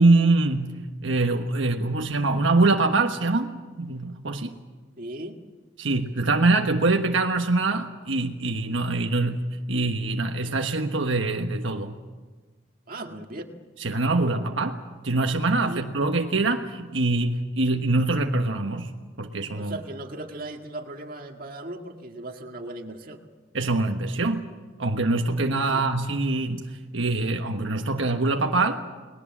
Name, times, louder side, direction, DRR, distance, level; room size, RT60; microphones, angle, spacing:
voice 1, 0.0-4.5 5.8-12.0 13.8-14.8 15.0-18.9 19.2-19.8 23.5-24.4 24.8-28.8, right 2 dB, 70° right, 4 dB, 1.3 m, -24 dB
voice 2, 5.0-5.4 12.9-13.5 15.6-15.9 19.6-23.2 25.5-25.9, right 2 dB, 45° right, 3 dB, 2.0 m, -37 dB
30.0 x 20.0 x 7.4 m, 1.4 s
head